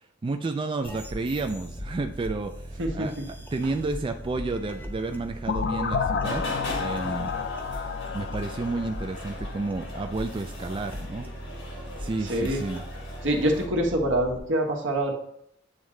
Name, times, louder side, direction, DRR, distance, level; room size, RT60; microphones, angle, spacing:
voice 1, 0.0-6.4 6.8-7.3 8.1-11.3 12.0-12.8, right 3 dB, 25° right, 5 dB, 0.3 m, -31 dB
sound 1, 0.8-14.4, equal, 10° left, 0.8 m, -39 dB
voice 2, 2.8-3.2 12.2-12.6 13.2-15.1, right 1 dB, 75° right, 1 dB, 1.3 m, -25 dB
sound 2, 5.5-10.2, left 5 dB, 55° left, 0.5 m, -31 dB
sound 3, 6.2-13.7, left 1 dB, 85° left, 1.7 m, -41 dB
8.9 x 3.7 x 3.2 m, 0.73 s
head